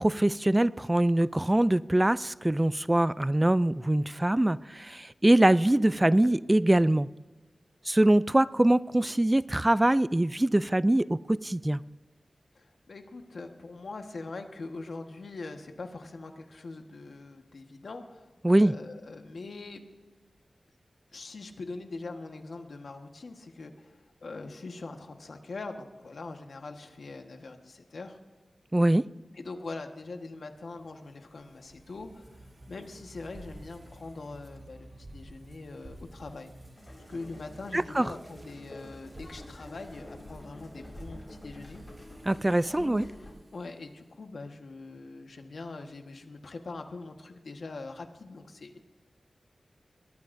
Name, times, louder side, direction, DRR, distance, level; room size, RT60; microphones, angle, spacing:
voice 1, 0.0-7.1 7.9-11.8 18.4-18.7 28.7-29.1 37.7-38.1 42.3-43.1, right 1 dB, 20° right, 17 dB, 0.3 m, -23 dB
voice 2, 12.5-19.8 21.1-28.2 29.3-32.4 32.7-36.5 37.1-41.8 42.5-43.1 43.5-48.8, left 3 dB, 80° left, 5 dB, 1.4 m, -42 dB
sound 1, 30.6-44.0, right 1 dB, 45° right, 1.7 m, -52 dB
sound 2, 36.7-43.3, left 1 dB, 35° left, 4.9 m, -48 dB
22.0 x 18.5 x 2.7 m, 1.2 s
cardioid pair, 50°, 0 cm